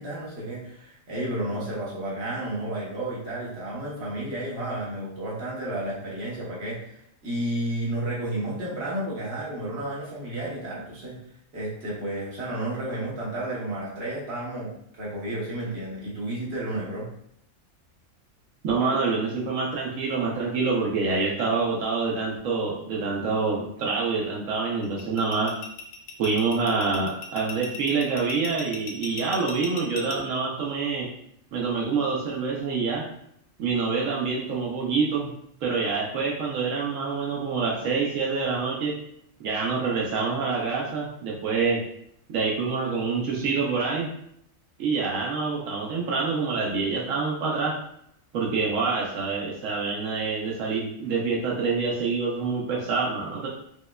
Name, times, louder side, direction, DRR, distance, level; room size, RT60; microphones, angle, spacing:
voice 1, 0.0-11.2 11.5-17.1, right 1 dB, 55° right, -5 dB, 1.3 m, -32 dB
voice 2, 18.6-25.5 26.2-31.1 31.5-33.0 33.6-35.3 35.6-38.9 39.4-41.8 42.3-44.1 44.8-47.7 48.3-53.5, right 4 dB, 85° right, -3 dB, 1.0 m, -26 dB
sound 1, 24.8-30.2, left 5 dB, 80° left, 0.9 m, -38 dB
4.9 x 2.2 x 2.2 m, 0.71 s
omnidirectional pair, 1.3 m